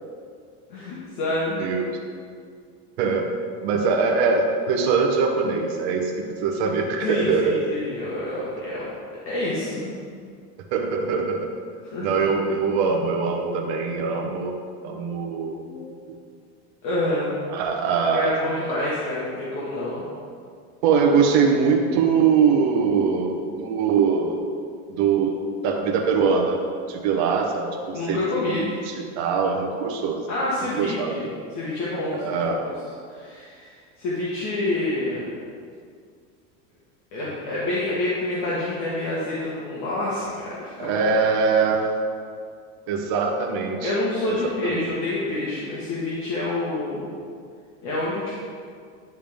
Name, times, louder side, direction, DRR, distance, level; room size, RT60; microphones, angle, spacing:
voice 1, 0.7-1.6 7.0-8.9 9.2-10.0 11.8-12.2 15.6-15.9 16.8-17.3 18.1-20.0 27.9-28.7 30.3-32.2 32.7-32.8 33.1-35.3 37.1-41.0 43.8-47.1 47.8-48.4, left 2 dB, 50° left, -7 dB, 1.4 m, -27 dB
voice 2, 3.0-3.3 3.6-7.6 10.7-11.4 12.0-14.5 14.8-15.6 16.1-16.2 17.5-18.3 20.8-24.4 24.9-25.3 25.6-26.6 26.9-27.7 28.1-28.2 28.5-30.2 30.7-31.3 32.2-32.6 40.8-42.0 42.9-43.9 44.6-44.8, right 5 dB, 60° right, 1 dB, 1.0 m, -22 dB
10.5 x 3.5 x 3.5 m, 2.2 s
supercardioid pair, 135°, 36 cm